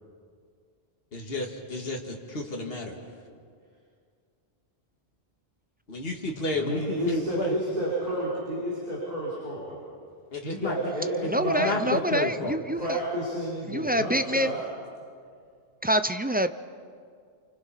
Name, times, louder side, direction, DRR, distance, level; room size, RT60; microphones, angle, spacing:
voice 1, 1.1-3.0 5.9-7.6 10.3-10.7 11.2-11.3 11.6-12.6, left 2 dB, 65° left, 0 dB, 2.1 m, -31 dB
voice 2, 6.5-9.8 10.4-12.0 12.7-14.6, right 1 dB, 40° right, -8 dB, 5.5 m, -31 dB
voice 3, 11.3-13.0 13.7-14.5 15.8-16.5, equal, 15° right, 9 dB, 0.3 m, -26 dB
29.5 x 24.5 x 5.7 m, 2.2 s
omnidirectional pair, 1.1 m